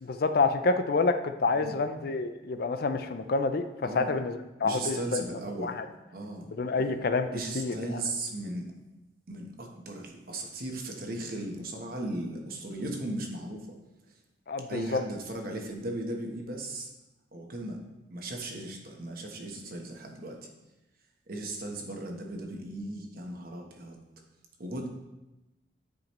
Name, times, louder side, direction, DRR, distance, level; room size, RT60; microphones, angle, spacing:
voice 1, 0.0-3.7 3.9-5.2 5.6-5.8 6.6-7.3 7.5-8.0 14.5-15.0, left 3 dB, 55° left, 9 dB, 0.4 m, -28 dB
voice 2, 4.6-5.8 6.1-6.5 7.3-8.7 9.3-13.7 14.7-16.9 17.3-17.8 18.1-20.5 21.3-24.0 24.6-24.9, right 1 dB, 50° right, 2 dB, 1.1 m, -37 dB
10.5 x 5.1 x 3.1 m, 1.0 s
head